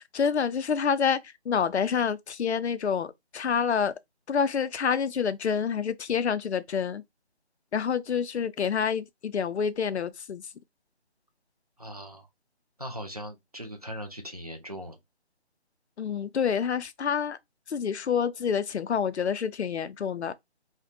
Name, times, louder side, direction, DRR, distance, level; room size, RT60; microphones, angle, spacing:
voice 1, 0.1-1.2 1.5-3.9 4.3-7.0 7.7-10.5 16.0-17.4 17.7-20.3, left 7 dB, 80° left, 0.5 m, -27 dB
voice 2, 11.8-12.3 12.8-15.0, equal, 35° right, 0.4 m, -39 dB
2.5 x 2.1 x 2.8 m
figure-of-eight pair, 165°, 33 cm